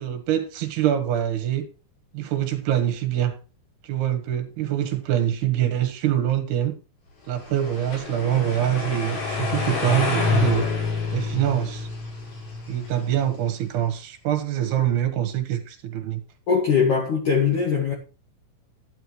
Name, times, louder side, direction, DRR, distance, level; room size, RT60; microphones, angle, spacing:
voice 1, 0.0-1.7 2.1-3.4 3.8-6.7 7.3-10.7 11.1-11.9 12.7-16.2, right 11 dB, 65° right, 3.1 m, -24 dB
sound 1, 7.4-13.5, left 4 dB, 70° left, 7.7 m, -28 dB
voice 2, 16.5-17.9, left 6 dB, 55° left, 2.7 m, -21 dB
12.5 x 10.5 x 3.2 m
omnidirectional pair, 5.6 m